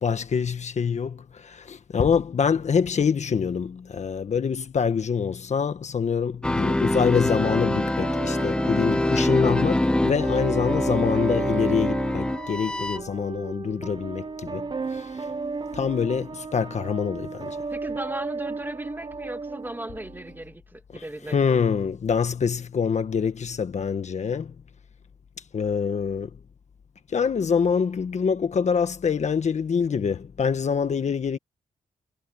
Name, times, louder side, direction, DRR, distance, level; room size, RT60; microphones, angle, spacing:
voice 1, 0.0-15.3 15.7-17.6 20.9-24.5 25.5-26.3 27.1-31.4, left 6 dB, 55° left, 1.4 m, -25 dB
sound 1, 6.4-13.0, left 1 dB, 5° left, 0.3 m, -25 dB
sound 2, 7.4-20.4, right 4 dB, 35° right, 0.9 m, -34 dB
voice 2, 17.7-21.6, right 1 dB, 15° right, 2.8 m, -37 dB
cardioid pair, 90°, 14 cm